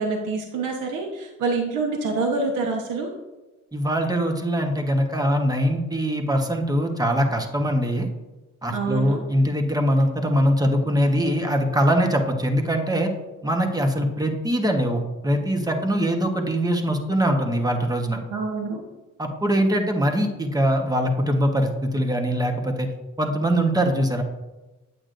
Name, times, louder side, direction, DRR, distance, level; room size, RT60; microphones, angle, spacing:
voice 1, 0.0-3.1 8.7-9.2 18.3-18.8, right 3 dB, 85° right, 1 dB, 1.1 m, -26 dB
voice 2, 3.7-8.1 8.6-13.1 13.4-18.2 19.2-22.9 23.2-24.2, equal, 10° right, 4 dB, 1.2 m, -22 dB
8.5 x 8.0 x 2.6 m, 1.1 s
cardioid pair, 90°, 30 cm